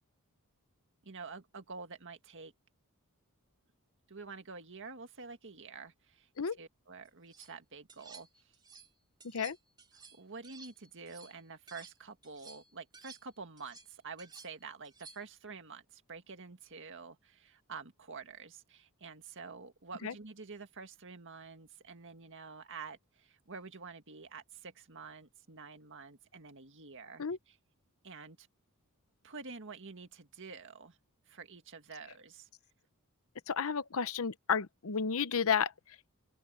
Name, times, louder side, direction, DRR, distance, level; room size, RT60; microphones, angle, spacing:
voice 1, 1.0-2.5 4.1-6.3 6.6-8.5 10.1-27.6 28.0-28.5 29.2-31.0 31.3-32.5, right 4 dB, 60° right, 1.9 m, -48 dB
sound 1, 7.1-7.5 7.9-8.9 9.2-12.0 12.2-15.4, right 5 dB, 20° right, 2.4 m, -55 dB
voice 2, 9.2-9.6 20.0-20.1 27.2-27.4 33.5-36.1, left 6 dB, 70° left, 0.8 m, -32 dB
open air
head